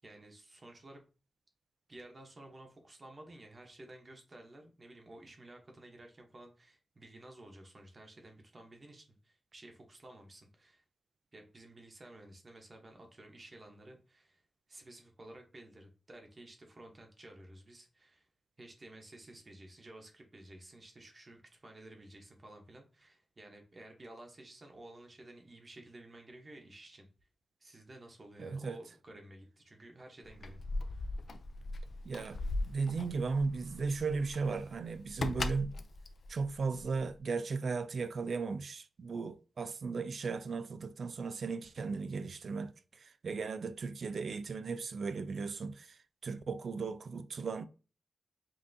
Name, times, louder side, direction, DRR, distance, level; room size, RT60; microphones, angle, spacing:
voice 1, 0.0-1.0 1.9-10.8 11.3-14.4 14.7-18.3 18.6-27.1 27.6-30.6 30.9-31.1, right 1 dB, 30° right, 0.8 m, -53 dB
voice 2, 28.4-28.8 32.0-35.7 36.3-47.6, right 4 dB, 55° right, 0.3 m, -36 dB
Keys jangling, 30.2-37.2, left 2 dB, 50° left, 0.4 m, -39 dB
5.3 x 2.7 x 2.6 m
wide cardioid pair, 150°, 0 cm